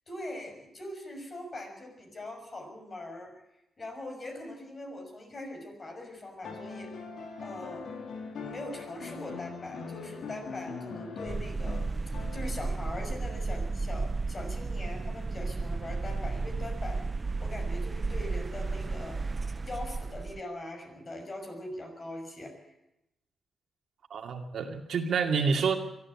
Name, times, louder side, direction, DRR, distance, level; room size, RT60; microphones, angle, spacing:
voice 1, 0.1-3.3 3.8-6.9 7.4-7.9 8.4-17.0 17.4-19.2 19.6-22.7, left 1 dB, 40° left, 3 dB, 6.4 m, -41 dB
sound 1, 6.4-12.9 14.4-14.5, left 5 dB, 80° left, 3.5 m, -42 dB
sound 2, 11.3-20.4, right 3 dB, 30° right, 0.6 m, -33 dB
voice 2, 24.1-25.8, right 5 dB, 70° right, 4 dB, 2.4 m, -28 dB
23.0 x 13.5 x 8.6 m, 0.89 s
cardioid pair, 90°, 0 cm